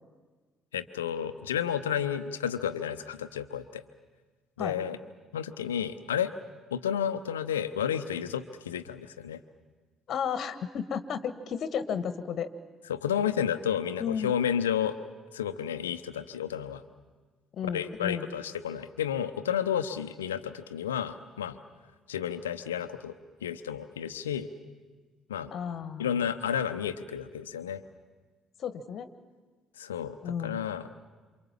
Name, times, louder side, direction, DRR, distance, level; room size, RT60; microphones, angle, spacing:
voice 1, 0.7-3.8 4.6-5.0 5.3-6.3 6.7-9.4 12.9-15.0 15.3-16.8 17.7-21.6 22.1-23.1 23.4-24.5 25.3-25.5 26.0-27.8 29.8-30.9, left 9 dB, 80° left, 11 dB, 0.9 m, -31 dB
voice 2, 10.1-12.5 14.0-14.3 17.5-18.3 25.5-26.1 28.6-29.1 30.2-30.6, left 7 dB, 50° left, 12 dB, 1.5 m, -33 dB
28.0 x 26.5 x 7.5 m, 1.4 s
figure-of-eight pair, 50°, 0 cm